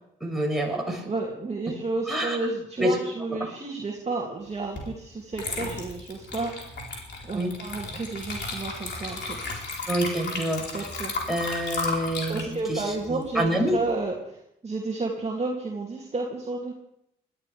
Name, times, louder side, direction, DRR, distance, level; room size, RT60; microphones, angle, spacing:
voice 1, 0.2-1.1 2.1-2.4 2.8-3.0 3.4-3.5 7.3-7.5 9.9-10.6 11.3-13.8, equal, ahead, -3 dB, 7.0 m, -27 dB
voice 2, 1.0-6.5 7.2-9.6 10.1-10.4 10.7-11.1 12.3-16.7, right 3 dB, 30° right, -2 dB, 2.6 m, -31 dB
Water / Liquid, 4.8-4.9 5.3-13.9, left 3 dB, 60° left, 4.1 m, -34 dB
21.0 x 13.0 x 3.5 m, 0.78 s
supercardioid pair, 60°, 21 cm